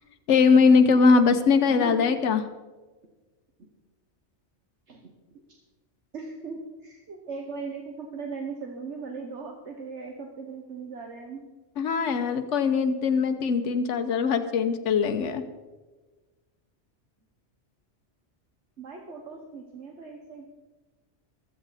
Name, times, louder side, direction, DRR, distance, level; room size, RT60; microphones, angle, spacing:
voice 1, 0.3-2.4 11.8-15.4, left 5 dB, 85° left, 7 dB, 1.2 m, -21 dB
voice 2, 1.7-2.2 3.6-3.7 4.9-5.1 5.5-5.6 6.1-11.4 18.8-20.5, right 4 dB, 75° right, 2 dB, 1.6 m, -38 dB
15.0 x 14.0 x 4.1 m, 1.2 s
omnidirectional pair, 1.2 m